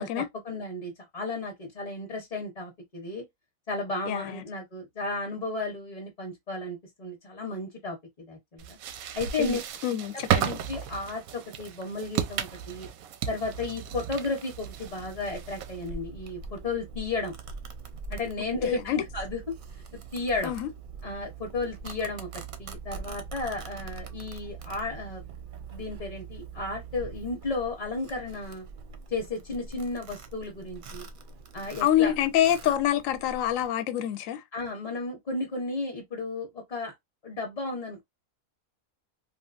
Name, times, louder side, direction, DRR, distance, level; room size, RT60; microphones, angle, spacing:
voice 1, 0.0-3.2 3.7-8.8 9.1-9.6 10.3-11.2 11.6-12.9 13.3-17.3 18.1-19.4 20.1-20.5 21.0-22.3 22.6-25.2 25.7-28.7 29.1-31.1 31.5-32.1 34.5-36.9 37.2-38.0, left 3 dB, 35° left, 0.8 m, -33 dB
voice 2, 4.1-4.4 9.4-10.5 18.6-19.0 20.4-20.7 31.8-34.4, left 11 dB, 75° left, 0.9 m, -26 dB
sound 1, 8.6-15.9, right 9 dB, 90° right, 1.0 m, -34 dB
Domestic sounds home sounds, 14.6-33.7, right 4 dB, 55° right, 0.6 m, -43 dB
3.3 x 2.4 x 2.4 m
omnidirectional pair, 1.4 m